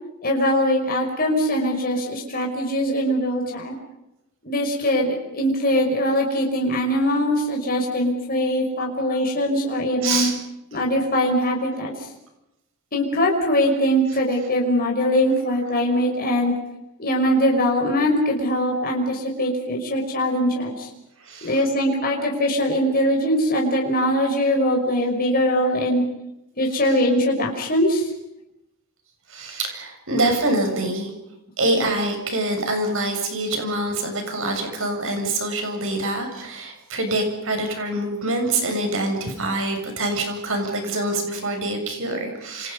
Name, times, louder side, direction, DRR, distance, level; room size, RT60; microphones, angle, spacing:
voice 1, 0.2-3.8 4.4-10.3 10.7-11.9 12.9-16.5 17.0-20.9 21.4-26.0 26.6-28.1, equal, 40° left, 0 dB, 5.8 m, -22 dB
voice 2, 10.0-10.3 21.2-21.5 29.3-31.1 31.6-42.7, right 2 dB, 60° right, 4 dB, 7.2 m, -25 dB
29.0 x 29.0 x 5.5 m, 0.88 s
head